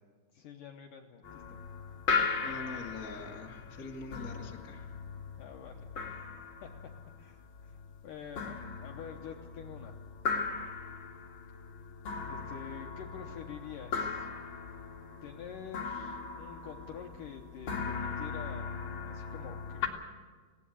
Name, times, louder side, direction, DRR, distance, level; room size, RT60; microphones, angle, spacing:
voice 1, 0.3-1.6 5.4-6.2 6.6-6.7 7.2-9.9 12.3-14.3 15.2-20.0, left 8 dB, 80° left, 3 dB, 1.9 m, -47 dB
sound 1, 1.2-19.9, left 5 dB, 40° left, 2.0 m, -38 dB
voice 2, 2.4-5.0, left 3 dB, 60° left, 0 dB, 0.9 m, -44 dB
20.0 x 18.0 x 8.5 m, 1.5 s
omnidirectional pair, 5.3 m